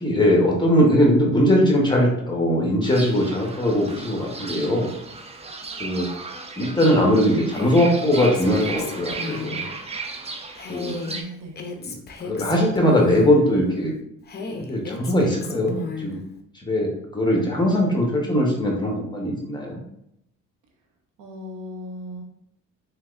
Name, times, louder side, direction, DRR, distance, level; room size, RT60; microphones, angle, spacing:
voice 1, 0.0-4.9 5.8-6.1 6.6-9.7 10.7-11.1 12.2-13.9 14.6-16.2 16.6-19.8, equal, 15° left, -1 dB, 1.0 m, -20 dB
Fowl / Bird, 2.8-11.2, right 3 dB, 20° right, 0.4 m, -35 dB
Female speech woman speaking, 7.5-9.6 10.6-13.5 14.3-16.2, left 4 dB, 35° left, 0.5 m, -34 dB
voice 2, 10.9-11.6 21.2-22.2, left 1 dB, 90° right, 2 dB, 0.8 m, -38 dB
3.3 x 3.2 x 2.4 m, 0.76 s
cardioid pair, 90°, 30 cm